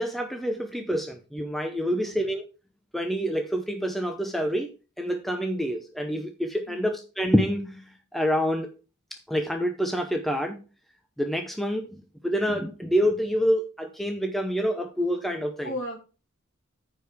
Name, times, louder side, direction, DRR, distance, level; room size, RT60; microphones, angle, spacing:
voice 1, 0.0-2.5 2.9-8.7 9.1-10.6 11.2-15.7, equal, ahead, 0.6 m, -27 dB
voice 2, 1.9-2.2 6.7-6.9 15.6-16.0, left 1 dB, 60° left, 2.4 m, -36 dB
14.0 x 4.7 x 3.4 m
head